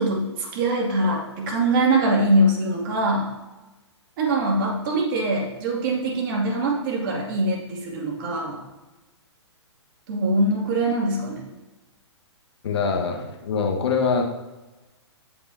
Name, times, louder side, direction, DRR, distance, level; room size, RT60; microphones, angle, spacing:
voice 1, 0.0-3.3 4.2-8.6 10.1-11.4, right 1 dB, 45° right, -2 dB, 2.5 m, -23 dB
voice 2, 12.6-14.2, left 5 dB, 65° left, 2 dB, 1.5 m, -24 dB
16.0 x 5.4 x 2.8 m, 1.1 s
hypercardioid pair, 125°, 15 cm